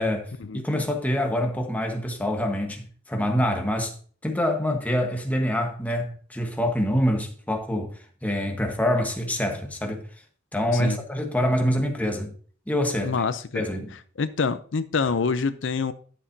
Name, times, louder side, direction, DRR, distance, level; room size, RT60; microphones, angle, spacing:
voice 1, 0.0-3.9 4.2-7.9 8.2-10.0 10.5-12.3 12.7-13.3 13.5-13.9, equal, 10° left, 1.3 m, -26 dB
voice 2, 13.0-13.6 14.2-15.9, left 5 dB, 75° left, 0.5 m, -26 dB
11.5 x 7.2 x 2.7 m
head